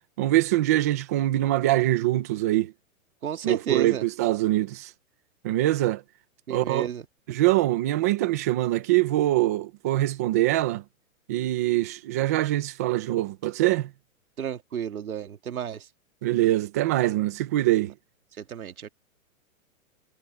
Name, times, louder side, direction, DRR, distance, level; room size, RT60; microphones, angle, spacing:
voice 1, 0.2-2.7 3.4-4.9 5.4-6.0 6.5-6.9 7.3-10.8 11.3-13.9 16.2-17.9, right 15 dB, 15° right, 0.4 m, -24 dB
voice 2, 3.2-4.0 6.5-7.0 14.4-15.8 18.4-18.9, right 8 dB, 90° right, 2.3 m, -31 dB
hypercardioid pair, 155°, 42 cm